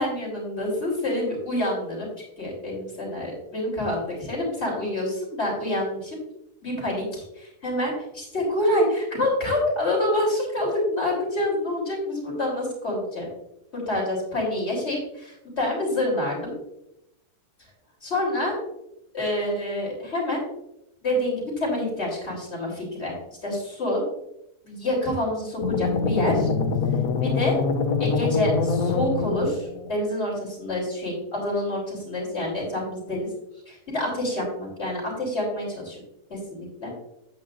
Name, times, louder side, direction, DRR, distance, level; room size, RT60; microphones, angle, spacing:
voice 1, 0.0-2.1 2.4-6.2 6.6-13.3 13.7-16.5 18.0-18.6 19.1-20.4 21.0-23.2 23.4-24.0 24.6-26.5 27.2-27.6 28.0-33.3 33.7-36.0 36.3-36.9, left 1 dB, 40° left, -2 dB, 3.8 m, -27 dB
sound 1, 25.6-29.9, left 5 dB, 70° left, 1.1 m, -24 dB
9.7 x 8.8 x 2.6 m, 0.81 s
omnidirectional pair, 1.7 m